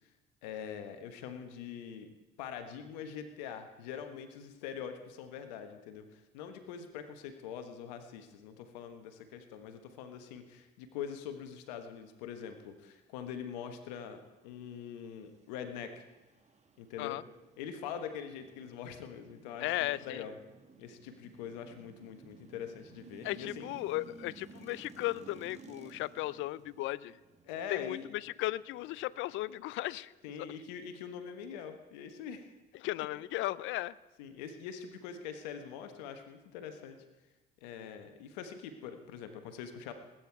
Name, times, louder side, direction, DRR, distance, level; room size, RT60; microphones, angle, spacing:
voice 1, 0.4-2.1 2.4-16.0 16.8-17.2 17.6-20.3 20.8-23.6 27.5-28.1 30.2-32.5 34.2-37.0 37.6-39.9, left 8 dB, 90° left, 8 dB, 1.3 m, -43 dB
sound 1, 14.0-30.8, right 4 dB, 35° right, 2.0 m, -57 dB
voice 2, 19.6-20.2 23.2-27.2 27.7-30.1 30.4-30.5 32.7-34.0, left 17 dB, 70° left, 21 dB, 0.5 m, -36 dB
19.5 x 9.2 x 4.7 m, 1.1 s
supercardioid pair, 65°, 21 cm